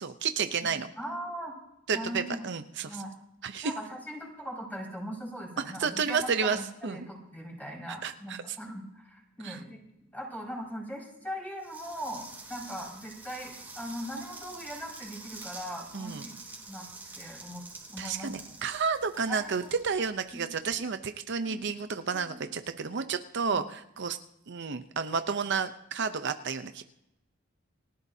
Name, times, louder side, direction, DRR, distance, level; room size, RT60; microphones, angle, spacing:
voice 1, 0.0-0.9 1.9-3.0 3.4-3.7 5.8-7.1 8.0-8.6 9.4-9.6 15.9-16.3 18.0-24.2 24.5-26.8, right 5 dB, 60° right, 9 dB, 0.7 m, -31 dB
voice 2, 1.0-1.5 1.9-2.4 2.9-3.1 3.6-9.8 10.1-16.3 16.7-16.9 17.2-17.6 17.9-18.5 19.3-19.6 20.3-20.4 21.5-21.6 22.1-22.4 23.5-23.6, equal, 10° left, -3 dB, 5.4 m, -40 dB
sound 1, 11.6-20.6, right 3 dB, 10° right, 3.3 m, -47 dB
29.0 x 12.5 x 2.8 m, 0.86 s
head